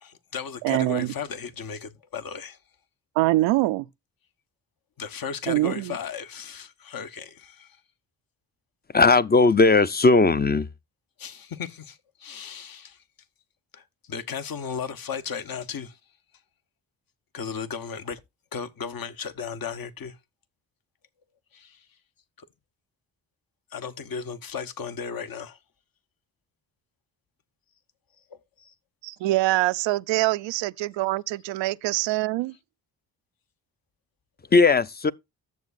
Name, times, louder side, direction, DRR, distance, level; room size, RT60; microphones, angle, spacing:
voice 1, 0.0-2.6 5.0-7.8 11.2-13.0 13.7-16.0 17.3-18.2 18.5-20.2 21.5-21.8 22.4-22.5 23.7-25.6 28.3-28.7, left 6 dB, 50° left, 1.1 m, -35 dB
voice 2, 0.6-1.1 3.2-3.9 5.5-6.0 29.0-32.6, right 18 dB, 85° right, 0.5 m, -24 dB
voice 3, 8.9-10.7 34.5-35.1, left 3 dB, 25° left, 0.6 m, -18 dB
11.0 x 7.1 x 2.5 m
supercardioid pair, 50°, 43 cm